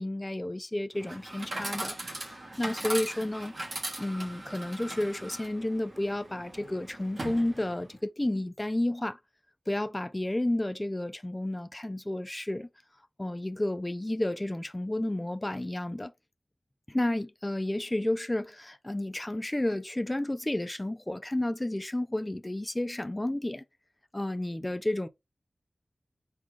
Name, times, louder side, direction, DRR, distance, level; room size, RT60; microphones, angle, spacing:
voice 1, 0.0-2.0 2.6-3.5 4.0-9.2 9.7-12.7 13.2-16.1 16.9-23.6 24.1-25.1, left 1 dB, 20° left, 0.3 m, -31 dB
Chatter / Coin (dropping), 0.9-8.0, right 1 dB, 50° right, 1.1 m, -39 dB
4.0 x 2.3 x 3.1 m
wide cardioid pair, 95°, 0 cm